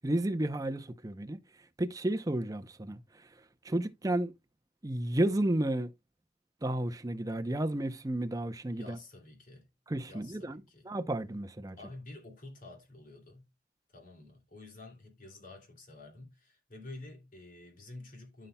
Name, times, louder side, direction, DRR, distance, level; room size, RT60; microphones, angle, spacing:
voice 1, 0.0-1.4 1.8-3.0 3.6-4.3 4.8-5.9 6.6-9.0 9.9-11.8, right 1 dB, 20° right, 0.6 m, -32 dB
voice 2, 8.7-9.7 10.1-10.9 11.8-13.5 13.9-18.5, left 2 dB, 45° left, 2.8 m, -49 dB
14.0 x 5.5 x 2.2 m
head